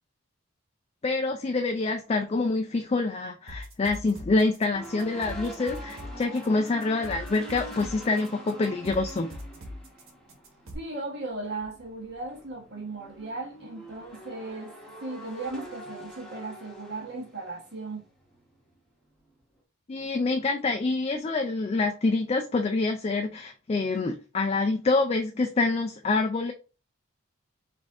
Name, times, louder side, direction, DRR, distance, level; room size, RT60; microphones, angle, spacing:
voice 1, 1.0-9.3 19.9-26.5, left 3 dB, 30° left, 0.3 m, -26 dB
sound 1, 3.5-10.7, equal, 75° right, 1.4 m, -41 dB
sound 2, 4.7-18.8 19.0-19.3, right 1 dB, 5° left, 1.1 m, -45 dB
voice 2, 10.7-18.0, right 3 dB, 55° right, 1.2 m, -37 dB
5.1 x 2.6 x 3.6 m
head